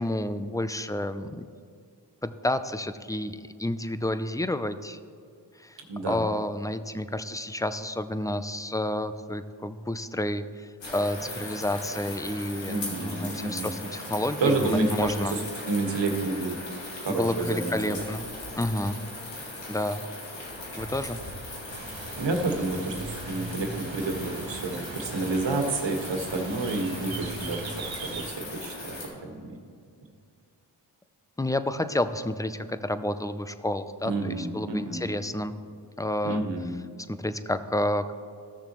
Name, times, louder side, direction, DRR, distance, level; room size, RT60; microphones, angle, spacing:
voice 1, 0.0-1.4 2.2-5.0 5.6-5.8 6.1-15.4 17.1-18.3 18.6-19.0 19.7-20.0 20.8-21.2 31.4-35.5 36.0-36.4 37.1-38.1, left 1 dB, 10° left, 11 dB, 0.5 m, -30 dB
voice 2, 5.9-6.2 12.7-13.9 14.4-16.6 17.0-18.1 22.2-29.0 29.2-29.6 34.0-35.1 36.2-36.8, right 2 dB, 75° right, 3 dB, 1.6 m, -29 dB
sound 1, 10.8-29.1, left 1 dB, 75° left, 2.6 m, -39 dB
sound 2, 21.7-28.3, right 3 dB, 90° right, 1.2 m, -40 dB
15.0 x 6.6 x 3.1 m, 2.3 s
cardioid pair, 50°, 45 cm